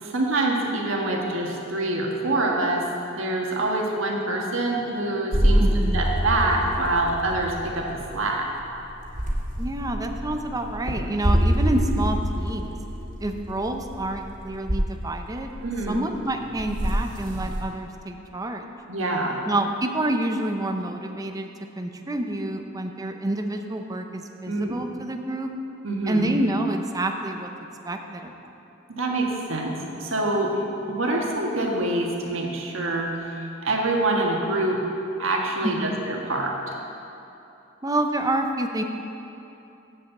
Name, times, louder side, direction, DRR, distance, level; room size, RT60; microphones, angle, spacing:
voice 1, 0.0-5.6 5.9-8.5 15.6-16.0 18.9-19.4 24.5-24.8 25.8-26.3 28.9-30.6 30.9-34.8 35.2-36.7, right 2 dB, 75° right, 0 dB, 1.4 m, -26 dB
sound 1, 5.3-17.6, equal, 40° right, 1.7 m, -26 dB
voice 2, 5.6-6.1 9.6-12.8 13.2-15.5 15.9-18.7 19.4-21.5 21.8-25.5 26.1-27.5 27.8-28.5 35.6-36.0 37.8-38.8, right 1 dB, 20° right, 5 dB, 0.6 m, -28 dB
7.4 x 7.1 x 7.8 m, 2.9 s
head